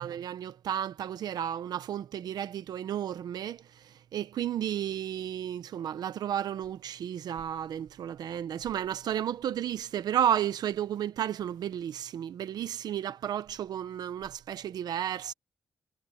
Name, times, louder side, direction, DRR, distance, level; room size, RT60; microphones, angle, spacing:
voice 1, 0.0-15.3, right 10 dB, 80° right, 1.0 m, -32 dB
cardioid pair, 120°, 7 cm